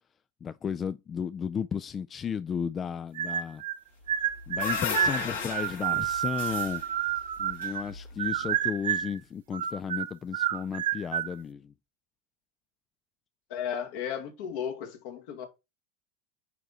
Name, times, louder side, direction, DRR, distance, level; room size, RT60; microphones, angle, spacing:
voice 1, 0.4-3.6 4.5-6.8 7.4-11.7, left 7 dB, 30° left, 0.4 m, -34 dB
sound 1, 3.2-3.8 4.1-7.9 8.2-9.2 9.5-11.3, right 10 dB, 80° right, 0.6 m, -29 dB
sound 2, 4.1-8.4, left 6 dB, 85° left, 4.4 m, -35 dB
voice 2, 13.5-15.5, left 8 dB, 65° left, 1.8 m, -34 dB
9.0 x 3.6 x 4.0 m
hypercardioid pair, 95°, 0 cm